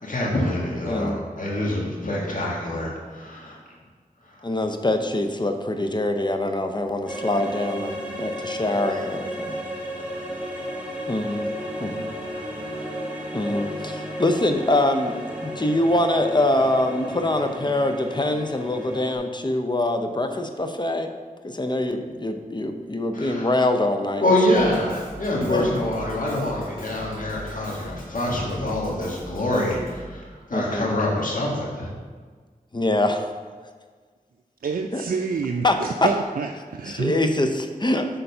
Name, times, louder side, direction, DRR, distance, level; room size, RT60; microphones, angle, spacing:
voice 1, 0.0-3.6 23.1-23.5 24.2-31.9, left 1 dB, 65° left, -3 dB, 1.7 m, -25 dB
voice 2, 0.9-1.2 4.4-9.6 11.1-11.5 11.8-12.0 13.3-21.1 21.4-24.8 25.4-25.7 30.5-30.9 32.7-33.3 34.9-35.0 35.6-36.1 36.9-38.1, left 1 dB, 30° left, 6 dB, 0.7 m, -24 dB
sound 1, 7.1-19.2, equal, 10° right, 1.6 m, -33 dB
Drum kit, 24.6-30.2, equal, 85° left, 1.6 m, -41 dB
voice 3, 34.6-37.1, right 5 dB, 75° right, 3 dB, 0.4 m, -27 dB
6.9 x 3.8 x 5.5 m, 1.5 s
cardioid pair, 40°, 15 cm